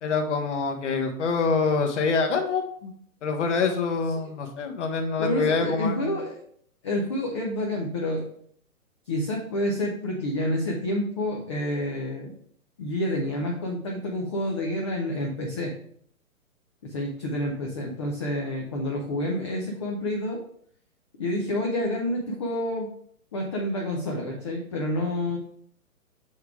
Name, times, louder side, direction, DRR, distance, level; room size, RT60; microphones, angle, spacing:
voice 1, 0.0-2.9 3.2-6.1, left 4 dB, 55° left, 5 dB, 1.3 m, -25 dB
voice 2, 5.2-6.3 6.8-8.2 9.1-12.3 12.8-15.7 16.8-20.4 21.2-22.9 23.3-25.4, left 1 dB, 20° left, 0 dB, 0.5 m, -28 dB
7.1 x 3.5 x 4.7 m, 0.64 s
hypercardioid pair, 145°, 44 cm